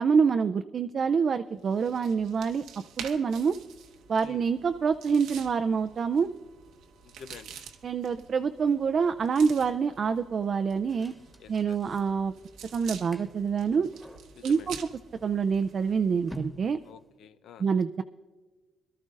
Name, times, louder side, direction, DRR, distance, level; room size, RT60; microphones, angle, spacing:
voice 1, 0.0-2.6 3.0-3.6 4.1-6.3 7.8-11.1 11.5-12.3 12.7-13.9 14.4-14.8 15.2-16.8 17.6-18.0, right 6 dB, 50° right, 8 dB, 0.4 m, -26 dB
sound 1, 1.6-16.2, right 7 dB, 90° right, 1.0 m, -48 dB
voice 2, 7.0-7.5 11.4-11.8 14.3-14.7 16.8-17.6, left 7 dB, 75° left, 12 dB, 0.6 m, -48 dB
sound 2, 10.9-17.2, equal, ahead, 1.4 m, -49 dB
22.5 x 13.0 x 2.5 m, 1.3 s
cardioid pair, 90°, 0 cm